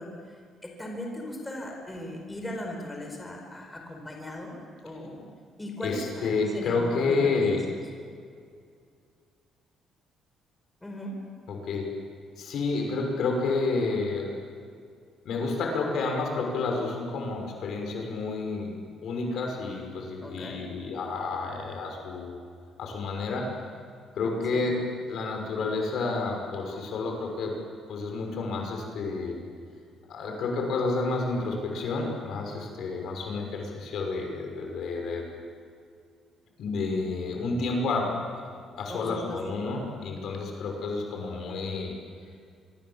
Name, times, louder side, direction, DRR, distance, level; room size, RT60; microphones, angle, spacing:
voice 1, 0.0-4.5 4.8-5.3 5.6-7.4 10.8-11.2 20.2-20.7 24.5-24.6 38.9-39.4, left 1 dB, 10° left, 1 dB, 4.8 m, -38 dB
voice 2, 5.8-7.6 11.5-11.9 12.4-14.3 15.2-18.7 19.0-22.4 22.8-23.5 24.1-27.6 27.9-29.4 30.1-35.3 36.6-41.9, left 3 dB, 65° left, 2 dB, 6.0 m, -30 dB
26.0 x 23.0 x 7.5 m, 2.2 s
cardioid pair, 130°, 0 cm